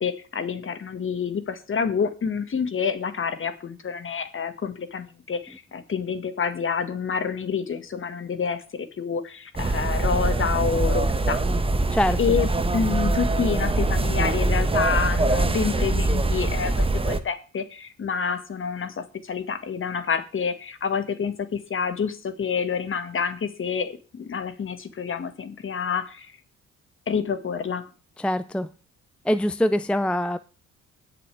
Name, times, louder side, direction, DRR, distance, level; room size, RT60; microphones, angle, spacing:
voice 1, 0.0-11.4 12.2-26.3 27.1-27.9, left 6 dB, 45° left, 10 dB, 1.8 m, -28 dB
sound 1, 9.6-17.2, right 2 dB, 20° right, 1.1 m, -23 dB
voice 2, 28.2-28.7 29.3-30.4, left 1 dB, 5° left, 13 dB, 0.5 m, -23 dB
20.5 x 6.9 x 3.4 m, 0.35 s
cardioid pair, 90°, 30 cm